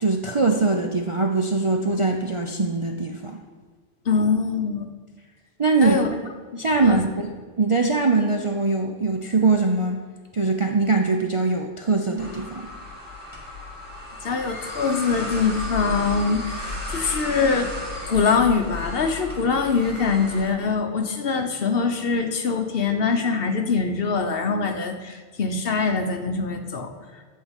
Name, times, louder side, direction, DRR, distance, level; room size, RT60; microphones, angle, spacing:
voice 1, 0.0-3.4 5.6-6.2 6.6-7.3 7.6-10.0 10.3-12.7, right 3 dB, 35° right, 2 dB, 0.5 m, -22 dB
voice 2, 4.0-4.9 5.8-6.1 6.5-7.2 14.2-17.7 18.1-27.2, left 5 dB, 55° left, 5 dB, 1.0 m, -23 dB
sound 1, 12.2-20.5, left 2 dB, 15° left, 2.1 m, -34 dB
11.0 x 4.5 x 8.1 m, 1.5 s
omnidirectional pair, 1.3 m